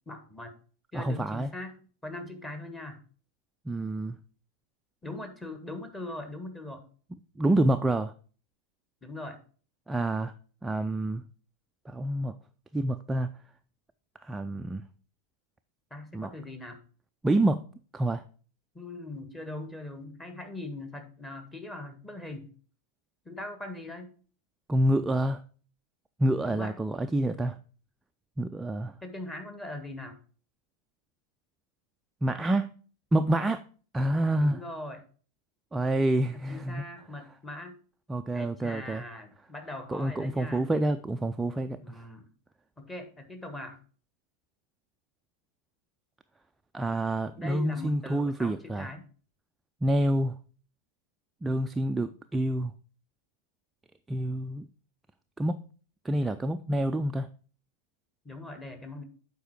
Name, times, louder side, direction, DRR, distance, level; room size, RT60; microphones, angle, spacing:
voice 1, 0.1-0.6 0.9-3.0 5.0-6.8 9.0-9.4 15.9-16.8 18.7-22.5 23.2-24.2 26.4-26.8 29.0-30.2 34.4-35.0 36.3-37.8 38.3-40.7 41.8-42.3 42.8-43.8 47.4-49.1 58.2-59.0, left 2 dB, 10° left, 6 dB, 1.3 m, -41 dB
voice 2, 0.9-1.5 3.7-4.2 7.4-8.1 9.9-10.3 10.6-11.2 11.9-12.3 12.7-13.3 14.2-14.8 16.1-16.3 17.2-17.6 17.9-18.2 24.7-25.4 26.2-27.6 28.4-28.9 32.2-32.7 33.1-33.6 33.9-34.6 35.7-36.8 38.1-39.0 39.9-41.8 46.7-48.9 49.8-50.3 51.4-52.7 54.1-54.6 55.4-55.6 56.0-57.3, right 1 dB, 10° right, 8 dB, 0.3 m, -27 dB
8.0 x 4.7 x 4.5 m, 0.41 s
figure-of-eight pair, 90°, 0 cm